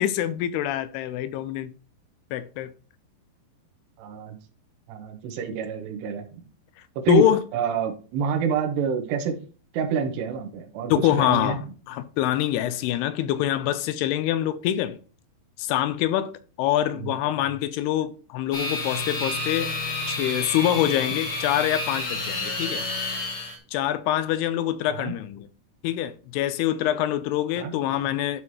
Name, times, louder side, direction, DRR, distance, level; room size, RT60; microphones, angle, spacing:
voice 1, 0.0-1.7 2.3-2.7 7.1-7.4 10.9-15.0 15.6-19.7 20.1-22.9 23.7-25.5 25.8-28.4, left 12 dB, 85° left, 2.4 m, -25 dB
voice 2, 4.0-4.4 4.9-6.2 7.0-7.3 7.5-9.4 9.7-10.9 11.2-11.6 17.0-17.2 24.9-25.1 27.6-27.7, right 7 dB, 90° right, 3.1 m, -27 dB
sound 1, 18.5-23.6, left 2 dB, 45° left, 1.9 m, -30 dB
12.0 x 4.7 x 2.9 m
omnidirectional pair, 4.9 m